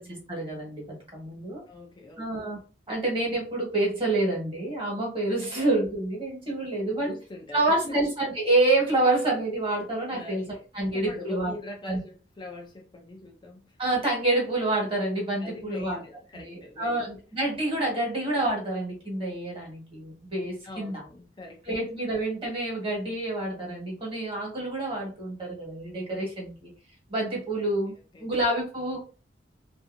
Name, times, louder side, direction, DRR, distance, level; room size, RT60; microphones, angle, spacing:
voice 1, 0.0-1.6 2.2-2.6 2.9-7.1 7.5-11.5 11.9-12.0 13.8-16.0 16.4-21.0 21.7-26.7 27.1-27.9 28.2-29.0, right 2 dB, 30° right, 1.3 m, -28 dB
voice 2, 1.7-2.3 5.5-5.6 7.0-8.0 10.1-13.8 15.4-17.0 20.6-21.8 27.5-27.7 28.1-28.3, left 2 dB, 25° left, 0.4 m, -43 dB
2.6 x 2.6 x 2.5 m
head